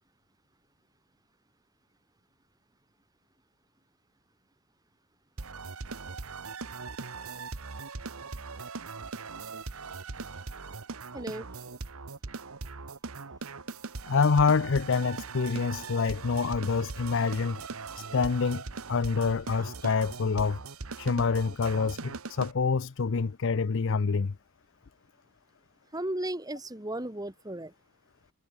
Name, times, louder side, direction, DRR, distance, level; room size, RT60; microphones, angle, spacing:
sound 1, 5.4-22.5, right 4 dB, 80° right, 1.3 m, -40 dB
voice 1, 11.1-11.5 25.9-27.7, right 1 dB, 15° right, 2.3 m, -35 dB
voice 2, 14.1-17.6 18.0-18.6 18.9-20.6 21.0-24.3, left 5 dB, 60° left, 0.6 m, -26 dB
head